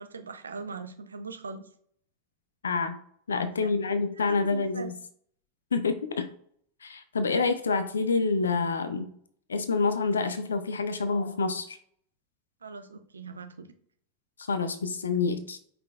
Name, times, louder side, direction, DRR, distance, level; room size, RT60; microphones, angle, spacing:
voice 1, 0.0-1.7 3.3-3.8 4.3-4.9 12.6-13.7, right 4 dB, 75° right, 8 dB, 0.5 m, -41 dB
voice 2, 2.6-3.0 3.3-4.9 5.7-6.3 6.8-9.1 9.5-11.8 14.5-15.6, left 4 dB, 70° left, 10 dB, 0.4 m, -27 dB
5.2 x 3.8 x 2.3 m, 0.62 s
figure-of-eight pair, 90°, 0 cm